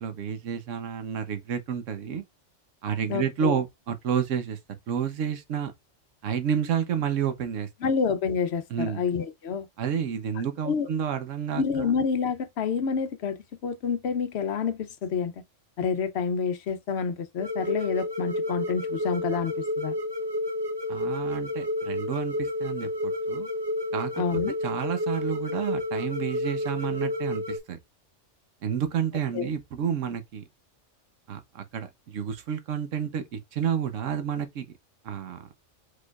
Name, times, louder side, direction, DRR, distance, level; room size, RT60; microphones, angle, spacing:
voice 1, 0.0-2.2 2.8-4.6 4.9-5.7 6.2-7.7 8.7-9.0 9.8-11.6 20.9-23.5 23.9-24.2 24.6-27.8 28.6-30.4 31.3-34.7 35.0-35.5, right 8 dB, 85° right, 1.2 m, -30 dB
voice 2, 3.1-3.6 7.8-9.7 10.6-10.9 11.5-13.4 13.6-15.3 15.8-19.9 24.2-24.5 29.3-29.5, left 6 dB, 65° left, 0.8 m, -28 dB
sound 1, 17.4-27.6, left 1 dB, 30° right, 0.6 m, -30 dB
4.7 x 4.4 x 2.3 m
omnidirectional pair, 1.3 m